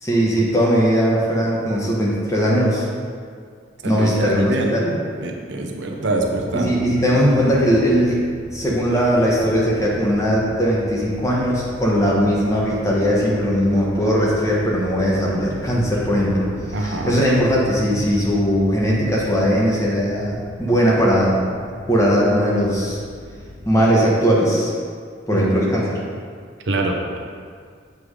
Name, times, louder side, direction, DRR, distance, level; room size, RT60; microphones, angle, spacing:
voice 1, 0.0-2.9 3.8-4.9 6.5-8.1 8.5-16.5 16.8-21.4 21.9-23.0 23.7-24.7 25.3-26.0, equal, 15° left, -5 dB, 1.1 m, -19 dB
voice 2, 3.8-4.7 5.2-6.7 16.7-17.2 25.3-25.4 26.7-27.2, right 2 dB, 75° right, 1 dB, 0.7 m, -24 dB
sound 1, 6.2-23.9, left 2 dB, 80° left, 0.6 m, -38 dB
7.7 x 3.4 x 4.8 m, 2.1 s
head